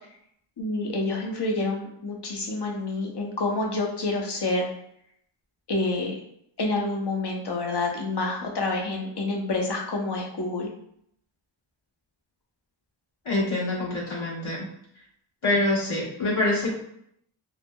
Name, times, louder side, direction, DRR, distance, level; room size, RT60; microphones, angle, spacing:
voice 1, 0.6-4.6 5.7-6.2 6.6-10.7, left 2 dB, 55° left, 0 dB, 0.8 m, -28 dB
voice 2, 13.2-14.7 15.4-16.7, left 2 dB, 70° left, -7 dB, 1.4 m, -25 dB
3.4 x 2.0 x 2.2 m, 0.72 s
wide cardioid pair, 50°, 49 cm